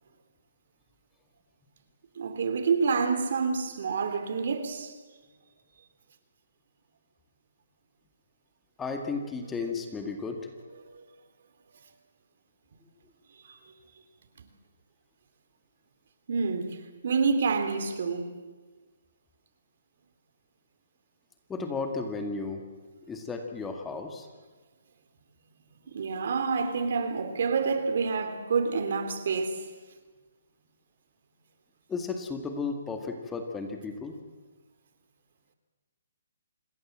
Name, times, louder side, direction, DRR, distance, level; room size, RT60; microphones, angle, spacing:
voice 1, 2.2-4.9 10.9-11.0 13.3-13.6 14.4-14.5 16.3-16.8 17.0-18.3 25.9-29.7, right 5 dB, 60° right, 3.3 m, -28 dB
voice 2, 8.8-10.4 21.5-22.6 23.1-24.3 31.9-34.2, left 4 dB, 10° left, 2.0 m, -34 dB
26.5 x 20.0 x 7.5 m
hypercardioid pair, 155°, 0 cm